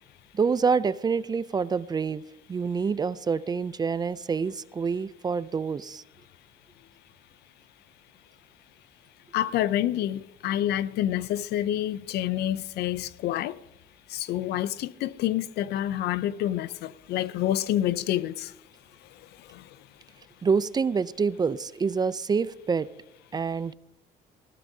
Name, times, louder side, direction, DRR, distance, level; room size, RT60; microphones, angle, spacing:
voice 1, 0.3-2.2 2.5-6.0 20.4-22.9 23.3-23.7, right 5 dB, 25° right, 0.4 m, -27 dB
voice 2, 9.3-13.6 14.1-18.5 19.5-19.6, left 12 dB, 75° left, 0.5 m, -28 dB
20.0 x 15.0 x 2.7 m
cardioid pair, 110°, 17 cm